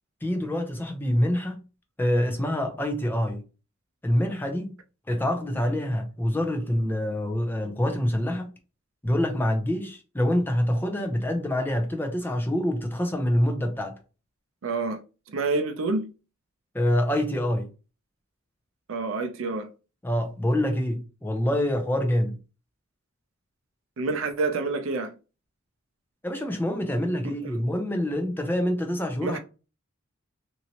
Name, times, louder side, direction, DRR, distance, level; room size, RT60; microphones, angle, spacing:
voice 1, 0.2-1.6 2.0-3.4 4.0-4.7 5.1-8.5 9.0-14.0 16.7-17.7 20.0-22.4 26.2-29.4, left 1 dB, 10° left, 0.5 m, -26 dB
voice 2, 14.6-15.0 15.3-16.1 18.9-19.7 24.0-25.1 27.2-27.6 29.2-29.4, right 3 dB, 70° right, 0.5 m, -28 dB
3.0 x 2.7 x 2.8 m
head